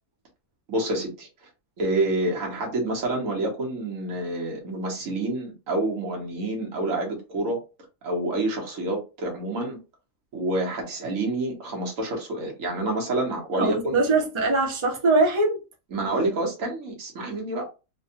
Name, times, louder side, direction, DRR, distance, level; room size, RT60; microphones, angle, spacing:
voice 1, 0.7-1.3 1.8-7.6 8.0-9.8 10.3-14.0 15.9-17.7, right 2 dB, 80° right, 1.4 m, -28 dB
voice 2, 13.5-15.6, right 3 dB, 30° right, 0.7 m, -22 dB
3.4 x 2.2 x 2.7 m
omnidirectional pair, 1.4 m